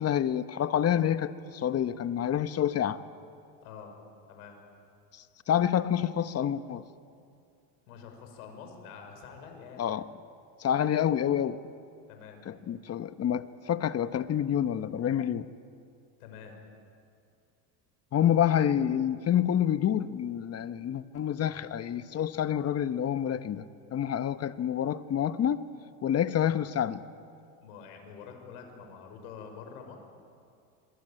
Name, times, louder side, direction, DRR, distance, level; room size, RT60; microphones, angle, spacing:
voice 1, 0.0-3.0 5.5-6.8 9.8-10.1 10.6-11.6 12.4-15.5 18.1-23.6 23.9-25.6 26.0-27.0, left 10 dB, 35° left, 12 dB, 1.3 m, -28 dB
voice 2, 3.6-3.9 4.3-4.6 7.9-9.9 12.1-12.4 16.2-16.6 27.6-30.0, left 6 dB, 80° left, 4 dB, 6.3 m, -46 dB
26.0 x 23.5 x 9.1 m, 2.4 s
supercardioid pair, 105°, 44 cm